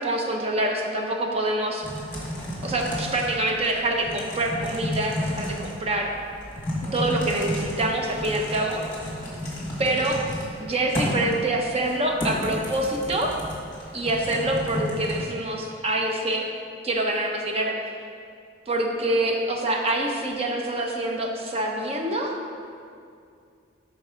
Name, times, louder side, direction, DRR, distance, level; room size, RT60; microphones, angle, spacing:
voice 1, 0.0-1.9 2.6-6.1 6.9-8.8 9.8-10.2 10.6-13.4 13.9-16.4 16.8-17.7 18.7-22.3, right 1 dB, 30° right, 1 dB, 0.6 m, -26 dB
Typing, 1.8-15.2, left 1 dB, 15° left, 1.6 m, -32 dB
5.3 x 5.3 x 5.0 m, 2.3 s
head